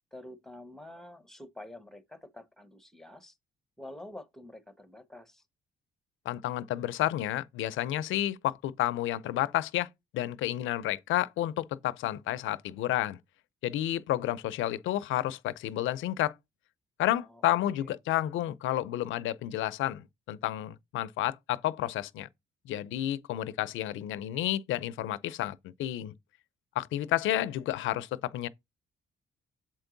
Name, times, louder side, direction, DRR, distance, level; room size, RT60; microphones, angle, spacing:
voice 1, 0.1-3.4 3.8-5.4 17.2-17.4 17.8-17.9, left 1 dB, ahead, 1.0 m, -48 dB
voice 2, 6.3-13.2 13.6-16.3 17.0-22.3 22.7-26.1 26.8-28.5, left 13 dB, 85° left, 0.6 m, -31 dB
7.6 x 4.5 x 3.9 m
cardioid pair, 90°, 20 cm